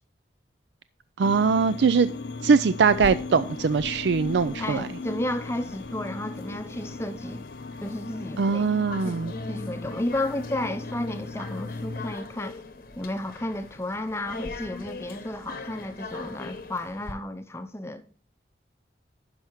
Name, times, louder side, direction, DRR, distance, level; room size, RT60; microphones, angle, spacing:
sound 1, 1.2-12.1, left 3 dB, 75° left, 0.5 m, -37 dB
voice 1, 1.2-2.1 2.4-4.9 8.4-9.3, right 5 dB, 80° right, 0.4 m, -22 dB
sound 2, 2.9-17.1, left 3 dB, 55° left, 0.9 m, -42 dB
voice 2, 4.6-7.5 7.8-8.7 9.0-12.6 13.0-18.1, left 1 dB, 15° left, 0.6 m, -33 dB
10.5 x 5.7 x 4.5 m
head